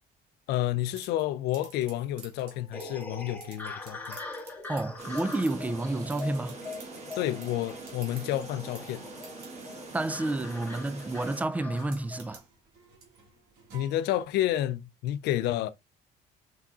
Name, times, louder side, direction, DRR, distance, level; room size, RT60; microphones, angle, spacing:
voice 1, 0.5-4.2 7.2-9.0 13.7-15.7, left 13 dB, 80° left, 0.4 m, -30 dB
sound 1, 1.0-14.5, right 5 dB, 80° right, 2.1 m, -53 dB
sound 2, 2.7-12.4, left 3 dB, 10° left, 1.5 m, -43 dB
voice 2, 4.7-6.6 9.9-12.4, right 2 dB, 10° right, 0.3 m, -30 dB
sound 3, 5.0-11.4, right 3 dB, 40° right, 1.8 m, -44 dB
5.6 x 3.6 x 2.3 m
cardioid pair, 110°, 17 cm